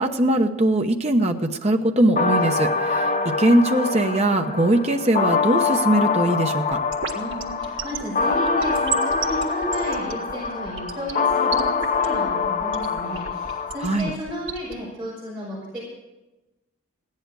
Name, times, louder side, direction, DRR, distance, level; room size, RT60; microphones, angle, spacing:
voice 1, 0.0-6.8 13.8-14.1, right 1 dB, 30° right, 5 dB, 0.9 m, -21 dB
sound 1, 2.2-14.2, left 4 dB, 35° left, 0.6 m, -25 dB
sound 2, 6.7-14.7, right 8 dB, 60° right, 1.7 m, -32 dB
voice 2, 7.1-15.8, left 1 dB, 5° right, -10 dB, 5.4 m, -32 dB
16.0 x 10.5 x 6.3 m, 1.1 s
head